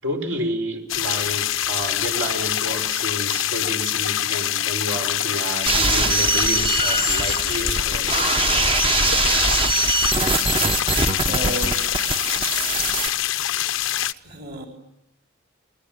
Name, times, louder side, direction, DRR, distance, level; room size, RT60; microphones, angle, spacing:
voice 1, 0.0-8.1, equal, 75° right, 3 dB, 5.1 m, -30 dB
sound 1, 0.9-14.1, left 12 dB, 90° left, 0.9 m, -25 dB
sound 2, 5.7-13.1, right 3 dB, 25° right, 1.0 m, -22 dB
voice 2, 11.1-11.9 13.1-13.3 14.2-14.7, right 1 dB, 55° right, 2 dB, 4.3 m, -32 dB
29.0 x 21.5 x 9.1 m, 0.89 s
head